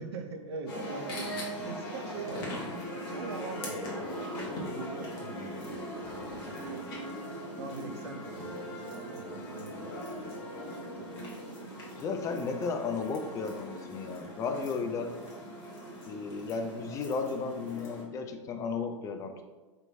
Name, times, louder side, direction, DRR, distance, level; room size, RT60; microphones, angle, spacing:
voice 1, 0.0-4.1 4.4-6.8 7.6-10.3 10.9-11.3, right 4 dB, 55° right, 5 dB, 0.6 m, -43 dB
sound 1, 0.7-18.0, equal, 45° left, 1.2 m, -40 dB
voice 2, 12.0-15.1 16.1-19.4, left 4 dB, 20° left, 6 dB, 0.4 m, -34 dB
5.2 x 2.9 x 2.7 m, 1.3 s
figure-of-eight pair, 95°, 16 cm